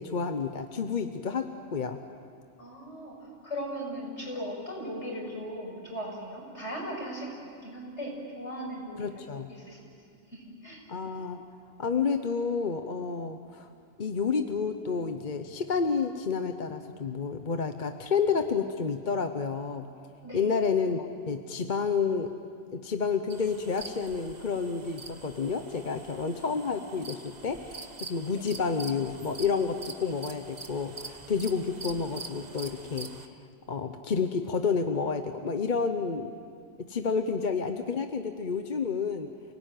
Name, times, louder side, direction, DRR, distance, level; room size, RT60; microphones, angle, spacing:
voice 1, 0.0-2.0 9.0-9.5 10.9-11.4 11.8-13.7 14.0-19.9 20.3-22.3 22.7-33.4 33.7-36.3 36.8-39.3, left 5 dB, 40° left, 7 dB, 1.0 m, -30 dB
voice 2, 2.6-9.8 10.3-10.8 20.2-20.5 28.3-28.4, equal, 60° left, -2 dB, 6.8 m, -38 dB
sound 1, 23.3-33.3, right 4 dB, 35° right, 1.2 m, -45 dB
28.5 x 18.5 x 9.3 m, 2.3 s
omnidirectional pair, 1.3 m